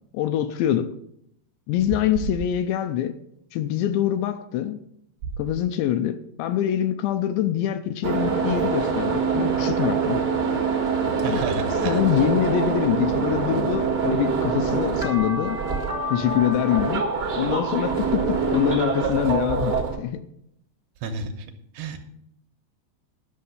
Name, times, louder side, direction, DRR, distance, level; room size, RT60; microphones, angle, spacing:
voice 1, 0.1-0.9 1.7-3.1 3.5-4.8 5.4-10.2 11.3-15.6 16.1-17.0 17.4-20.2, left 11 dB, 80° left, 2.7 m, -24 dB
sound 1, 8.0-20.0, right 5 dB, 55° right, 1.1 m, -25 dB
voice 2, 11.2-12.0 21.0-21.3 21.8-22.1, right 4 dB, 75° right, 2.7 m, -30 dB
11.5 x 6.5 x 7.9 m
omnidirectional pair, 5.3 m